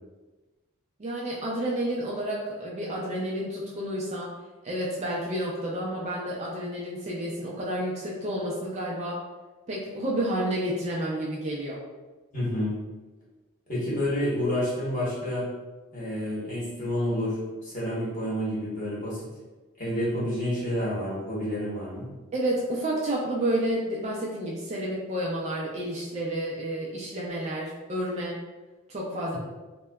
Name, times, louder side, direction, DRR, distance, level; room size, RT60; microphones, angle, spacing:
voice 1, 1.0-4.3 4.6-9.2 9.7-11.8 22.3-28.4 28.9-29.4, right 1 dB, 30° right, -4 dB, 0.3 m, -30 dB
voice 2, 12.3-12.7 13.7-15.5 15.9-19.2 19.8-22.1, left 1 dB, 35° left, -8 dB, 0.9 m, -29 dB
2.7 x 2.1 x 2.2 m, 1.2 s
head